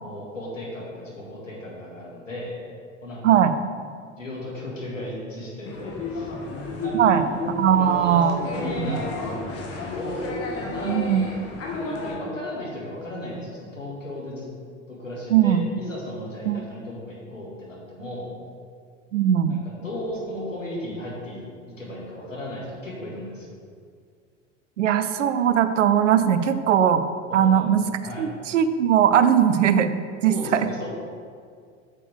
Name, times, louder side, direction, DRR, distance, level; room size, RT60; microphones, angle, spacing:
voice 1, 0.0-2.6 3.0-3.4 4.2-6.3 6.8-7.2 7.7-10.2 10.5-11.0 11.8-14.5 14.9-18.3 19.5-21.4 21.8-23.5 27.3-27.6 28.0-28.2 30.3-30.9, left 1 dB, 90° left, -5 dB, 1.9 m, -35 dB
voice 2, 3.2-3.6 6.9-7.2 7.6-8.4 8.8-9.0 10.8-11.2 15.3-15.6 16.5-16.6 19.1-19.6 24.8-27.0 27.3-27.9 28.2-29.9 30.2-30.7, right 9 dB, 75° right, 11 dB, 0.6 m, -19 dB
sound 1, 5.6-12.2, left 2 dB, 40° left, 1.6 m, -32 dB
8.4 x 6.7 x 3.4 m, 2.1 s
figure-of-eight pair, 75°, 37 cm